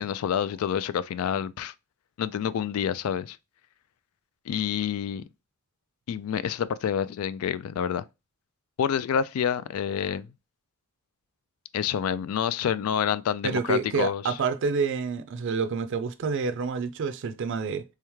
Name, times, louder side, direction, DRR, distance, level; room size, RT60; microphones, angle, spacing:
voice 1, 0.0-1.7 2.2-3.4 4.5-5.2 6.1-8.0 8.8-10.3 11.7-14.3, left 8 dB, 80° left, 0.3 m, -28 dB
voice 2, 13.4-17.8, right 5 dB, 60° right, 0.4 m, -28 dB
3.5 x 3.3 x 3.1 m
head